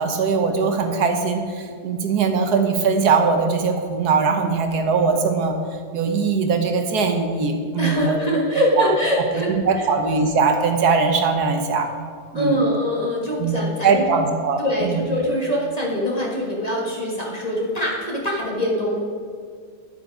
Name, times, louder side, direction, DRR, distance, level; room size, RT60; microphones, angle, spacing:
voice 1, 0.0-5.6 5.9-8.2 8.8-8.9 9.5-11.9 12.3-12.7 13.4-15.0, right 5 dB, 70° right, 5 dB, 1.4 m, -21 dB
voice 2, 7.8-9.9 12.3-14.2 14.6-19.0, equal, 25° left, -3 dB, 1.8 m, -23 dB
10.5 x 7.7 x 4.9 m, 2.1 s
omnidirectional pair, 1.8 m